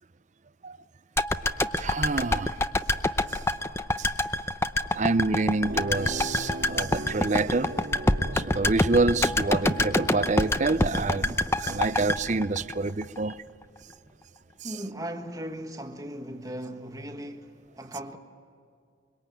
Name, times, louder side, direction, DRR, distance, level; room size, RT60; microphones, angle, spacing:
sound 1, 1.2-13.3 13.6-13.7, left 1 dB, 15° left, 0.6 m, -26 dB
voice 1, 1.4-2.6 3.3-3.4 4.0-4.1 4.9-7.7 8.3-13.4 14.6-14.8, right 3 dB, 40° right, 0.6 m, -27 dB
sound 2, 5.7-13.1, right 1 dB, 55° right, 1.8 m, -41 dB
voice 2, 14.6-18.2, equal, 20° right, 1.6 m, -38 dB
24.5 x 23.5 x 9.2 m
head